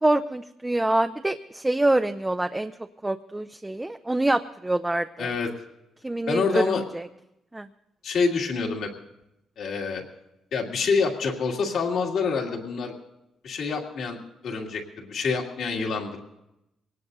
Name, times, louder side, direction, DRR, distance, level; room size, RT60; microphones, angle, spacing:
voice 1, 0.0-2.7 3.0-5.3 6.0-7.1 7.5-7.7, right 1 dB, 10° right, 7 dB, 0.5 m, -25 dB
voice 2, 5.2-5.5 6.3-6.8 8.0-8.9 9.6-10.0 10.5-12.9 13.4-14.2 14.4-16.4, left 5 dB, 70° left, 0 dB, 2.4 m, -27 dB
23.0 x 18.5 x 2.7 m, 0.86 s
cardioid pair, 90°, 0 cm